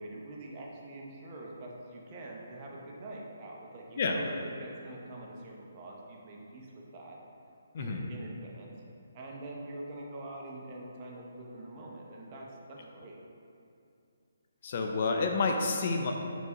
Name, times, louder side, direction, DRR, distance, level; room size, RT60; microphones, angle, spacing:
voice 1, 0.0-6.7 6.9-7.2 7.8-8.7 9.1-13.2, right 1 dB, 25° right, -2 dB, 0.8 m, -44 dB
voice 2, 14.6-16.1, left 4 dB, 45° left, 2 dB, 0.5 m, -29 dB
4.6 x 4.1 x 5.1 m, 2.5 s
hypercardioid pair, 165°, 0 cm